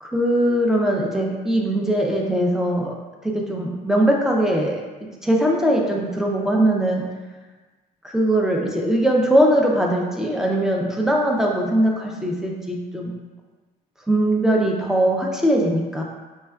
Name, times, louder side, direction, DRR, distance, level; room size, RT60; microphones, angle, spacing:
voice 1, 0.0-3.0 3.2-7.0 8.0-13.1 14.1-16.0, right 1 dB, 5° right, 0 dB, 0.4 m, -21 dB
4.3 x 2.2 x 2.3 m, 1.3 s
cardioid pair, 110°, 17 cm